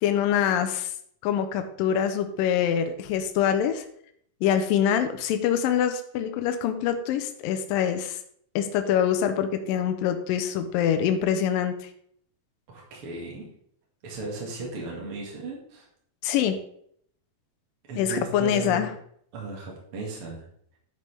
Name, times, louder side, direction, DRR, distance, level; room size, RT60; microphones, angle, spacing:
voice 1, 0.0-0.9 1.2-3.8 4.4-8.2 8.6-11.7 16.2-16.6 18.0-18.9, left 9 dB, 80° left, 7 dB, 2.3 m, -25 dB
voice 2, 12.7-13.5 14.0-15.9 17.9-18.9 19.3-20.5, right 3 dB, 45° right, -2 dB, 2.4 m, -36 dB
10.5 x 6.9 x 3.3 m, 0.66 s
omnidirectional pair, 4.2 m